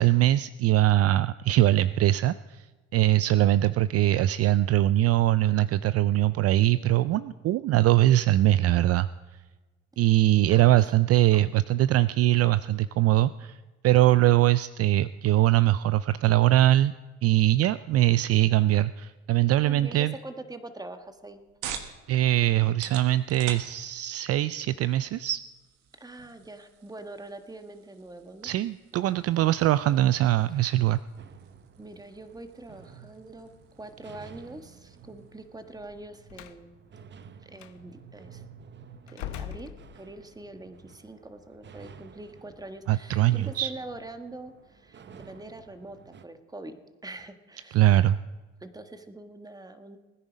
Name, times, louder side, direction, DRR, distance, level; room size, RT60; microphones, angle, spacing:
voice 1, 0.0-2.6 2.9-9.1 10.0-13.6 13.8-16.9 17.2-20.1 22.1-25.4 28.4-31.0 42.9-43.7 47.7-48.2, right 14 dB, 55° right, 15 dB, 0.4 m, -22 dB
voice 2, 10.5-10.9 11.3-11.4 11.8-11.9 19.6-21.4 26.0-28.5 30.6-30.7 31.8-36.7 37.4-38.4 39.1-47.9 48.6-50.0, right 2 dB, 15° right, 8 dB, 1.4 m, -44 dB
sound 1, 21.0-36.1, right 8 dB, 85° right, 1.4 m, -47 dB
sound 2, 31.2-46.3, right 6 dB, 35° right, 0.9 m, -51 dB
Slam, 36.3-36.6 37.6-37.7 39.1-40.4, left 11 dB, 80° left, 0.8 m, -40 dB
20.0 x 9.7 x 5.2 m, 1.2 s
supercardioid pair, 75°, 30 cm